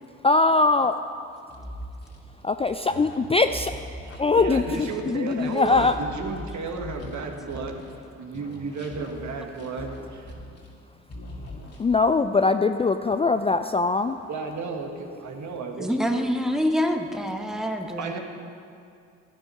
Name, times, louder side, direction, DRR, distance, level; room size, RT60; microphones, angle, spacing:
voice 1, 0.2-0.9 2.4-3.7 4.2-5.9 11.8-14.2, left 3 dB, 20° left, 9 dB, 0.4 m, -21 dB
sound 1, 1.5-8.0 8.3-10.8 11.1-12.2, equal, 45° left, 2.2 m, -41 dB
voice 2, 4.4-7.9 8.2-10.3 14.3-16.3 18.0-18.2, right 4 dB, 60° right, 3 dB, 1.6 m, -33 dB
voice 3, 15.8-18.2, equal, ahead, 4 dB, 1.2 m, -26 dB
12.5 x 8.9 x 5.5 m, 2.4 s
hypercardioid pair, 45°, 33 cm